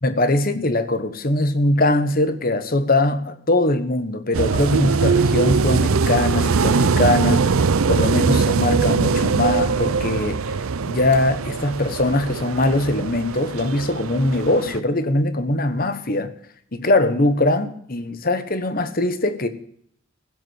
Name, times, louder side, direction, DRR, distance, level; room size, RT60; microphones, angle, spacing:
voice 1, 0.0-7.4 7.9-10.4 10.9-16.3 16.7-19.5, left 2 dB, 45° left, 1.2 m, -21 dB
sound 1, 4.3-14.8, right 4 dB, 85° right, 0.6 m, -21 dB
16.0 x 8.2 x 8.2 m
head